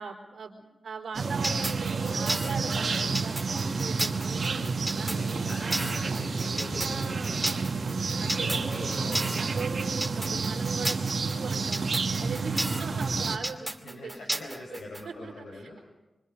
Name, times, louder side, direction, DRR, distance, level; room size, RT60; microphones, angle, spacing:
voice 1, 0.0-5.1 5.6-5.8 6.8-7.9 8.2-8.9 9.4-11.9 12.2-14.8 15.0-15.8, right 4 dB, 85° right, -1 dB, 3.9 m, -40 dB
sound 1, 1.1-13.4, right 4 dB, 65° right, 2.3 m, -30 dB
sound 2, 1.4-15.0, right 1 dB, 15° right, 2.2 m, -33 dB
voice 2, 4.9-7.9 8.4-9.4 12.7-13.0 13.8-15.8, left 1 dB, 90° left, -2 dB, 5.0 m, -42 dB
25.0 x 24.5 x 5.5 m, 1.0 s
cardioid pair, 40°, 0 cm